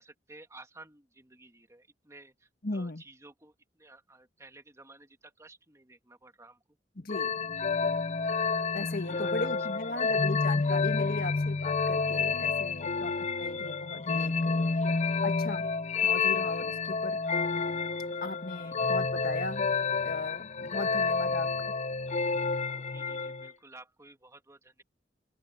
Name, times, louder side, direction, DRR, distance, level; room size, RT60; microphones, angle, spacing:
voice 1, 0.0-6.6 9.0-10.1 12.7-13.1 18.6-19.0 21.1-21.5 22.9-24.8, right 2 dB, 15° right, 2.7 m, -54 dB
voice 2, 2.6-3.0 7.0-7.4 8.7-15.7 16.0-17.2 18.2-19.7 20.0-21.7, left 2 dB, 55° left, 1.8 m, -37 dB
sound 1, 7.1-23.5, left 4 dB, 40° left, 0.5 m, -29 dB
open air
head